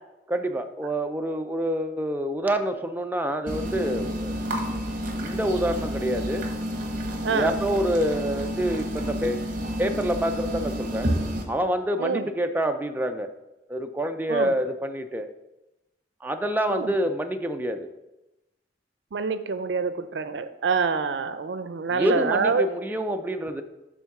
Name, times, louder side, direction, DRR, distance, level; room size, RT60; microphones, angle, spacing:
voice 1, 0.3-4.4 4.7-4.8 5.1-6.4 7.3-9.5 9.8-11.1 11.5-13.3 13.7-15.3 16.2-17.9 21.9-23.6, right 1 dB, 10° right, 6 dB, 0.4 m, -27 dB
sound 1, 3.5-11.4, equal, 50° right, 1.1 m, -30 dB
voice 2, 7.2-7.5 12.0-12.3 14.3-14.5 16.7-16.9 19.1-22.7, right 5 dB, 85° right, 11 dB, 0.5 m, -26 dB
7.0 x 3.6 x 5.8 m, 0.97 s
head